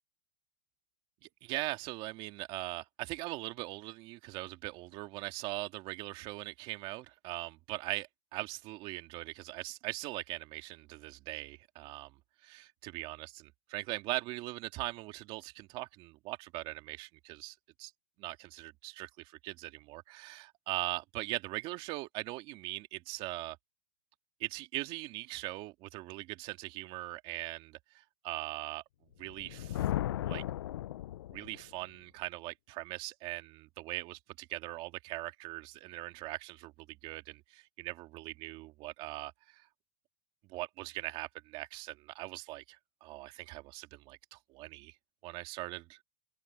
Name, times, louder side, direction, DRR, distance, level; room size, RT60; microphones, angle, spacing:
voice 1, 1.2-17.9 18.2-23.6 24.4-28.8 29.2-29.9 30.2-30.4 31.3-39.7 40.4-44.9 45.2-46.0, right 19 dB, 40° right, 2.2 m, -41 dB
Thunder, 29.2-31.7, left 13 dB, 80° left, 0.5 m, -36 dB
open air
supercardioid pair, 140°, 13 cm